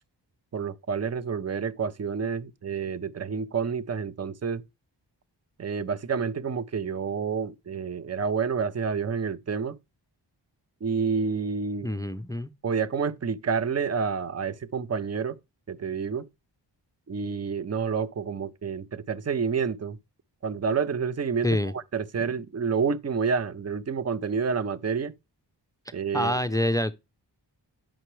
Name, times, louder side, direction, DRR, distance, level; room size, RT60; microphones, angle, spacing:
voice 1, 0.5-4.6 5.6-9.8 10.8-11.9 12.6-15.4 15.7-16.3 17.1-20.0 20.4-25.1 25.9-26.4, right 6 dB, 35° right, 0.6 m, -29 dB
voice 2, 11.8-12.5 21.4-21.7 22.2-22.3 26.1-26.9, left 1 dB, 10° left, 0.5 m, -26 dB
8.8 x 5.7 x 3.1 m
wide cardioid pair, 120°, 43 cm